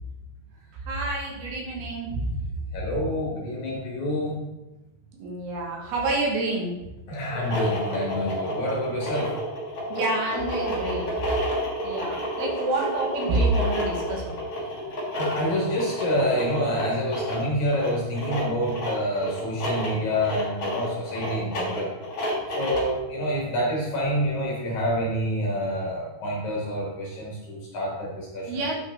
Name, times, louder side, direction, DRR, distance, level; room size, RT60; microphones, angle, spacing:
voice 1, 0.9-2.3 5.2-6.7 9.9-11.1 11.8-14.3 28.5-28.8, right 2 dB, 70° right, -1 dB, 3.3 m, -27 dB
voice 2, 2.7-4.4 7.1-9.3 15.1-21.9 22.5-28.6, equal, 55° left, -3 dB, 2.5 m, -27 dB
sound 1, 7.3-23.0, equal, 35° left, 3.5 m, -30 dB
8.9 x 5.9 x 4.5 m, 1.0 s
omnidirectional pair, 4.9 m